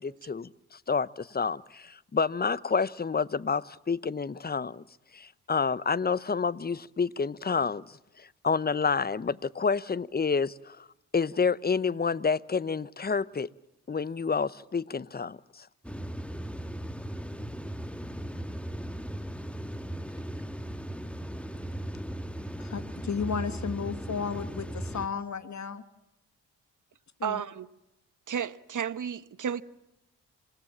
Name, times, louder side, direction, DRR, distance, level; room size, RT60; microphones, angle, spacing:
voice 1, 0.0-4.8 5.1-10.8 11.1-13.5 13.9-15.7, left 5 dB, 25° left, 0.9 m, -29 dB
sound 1, 15.8-25.1, right 1 dB, 5° left, 1.8 m, -37 dB
voice 2, 22.6-25.8 27.2-27.4, left 6 dB, 40° left, 2.1 m, -33 dB
voice 3, 27.2-27.7 28.3-29.6, right 8 dB, 45° right, 1.3 m, -32 dB
27.5 x 17.5 x 7.4 m
hypercardioid pair, 45°, 41 cm